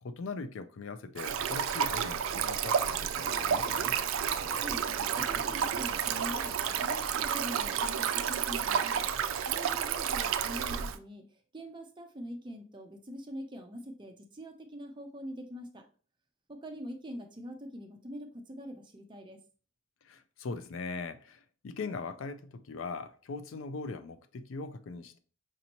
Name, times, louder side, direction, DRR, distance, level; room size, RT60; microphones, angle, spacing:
voice 1, 0.0-4.0 20.0-25.2, left 4 dB, 75° left, 0.4 m, -40 dB
Stream, 1.2-11.0, right 8 dB, 75° right, 0.3 m, -31 dB
sound 1, 2.6-8.3, left 1 dB, 40° left, 1.7 m, -48 dB
voice 2, 4.5-15.9 16.5-19.4, equal, 25° right, 0.5 m, -44 dB
5.3 x 2.7 x 2.9 m
head